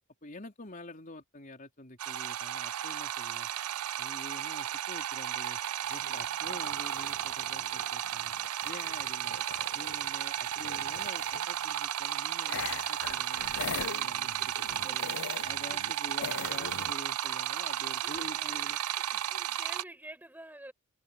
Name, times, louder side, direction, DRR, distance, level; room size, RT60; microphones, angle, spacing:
voice 1, 0.2-3.5 4.0-5.6 5.9-8.3 8.6-9.5 9.7-15.1 15.4-18.8 19.1-19.2, left 1 dB, 35° left, 4.1 m, -47 dB
sound 1, 2.0-19.8, right 11 dB, 85° right, 0.5 m, -34 dB
sound 2, 5.9-10.1 10.4-11.7 12.4-15.9 16.2-16.9, left 7 dB, 70° left, 0.6 m, -42 dB
voice 2, 17.7-19.0 19.3-20.7, right 1 dB, 10° right, 5.8 m, -50 dB
head